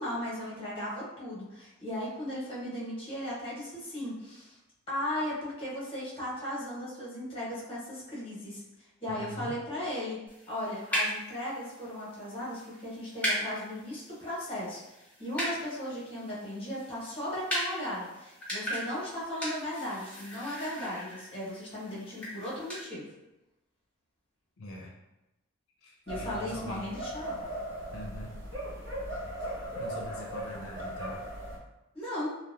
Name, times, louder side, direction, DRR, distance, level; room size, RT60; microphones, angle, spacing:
voice 1, 0.0-4.6 4.9-10.2 10.5-14.8 15.2-23.0 26.1-27.4 31.9-32.4, left 1 dB, 25° left, -8 dB, 1.0 m, -36 dB
voice 2, 9.1-9.6 24.6-24.9 25.8-26.9 27.9-28.3 29.8-31.2, left 1 dB, 90° left, -1 dB, 0.4 m, -43 dB
sound 1, 10.3-22.8, equal, 5° left, 0.7 m, -38 dB
sound 2, 26.1-31.6, right 1 dB, 60° right, 0.7 m, -38 dB
2.8 x 2.0 x 2.4 m, 0.96 s
head